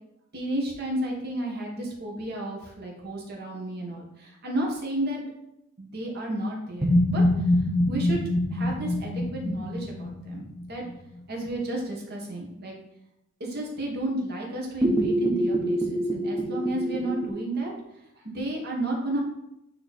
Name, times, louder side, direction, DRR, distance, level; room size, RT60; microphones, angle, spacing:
voice 1, 0.3-5.2 5.8-7.2 7.9-8.2 8.5-10.8 11.3-12.7 13.4-17.7 18.2-19.2, right 1 dB, 50° right, -2 dB, 1.7 m, -32 dB
sound 1, 6.8-10.8 14.8-17.2, left 1 dB, 20° right, 1.1 m, -25 dB
8.9 x 3.2 x 4.2 m, 0.85 s
head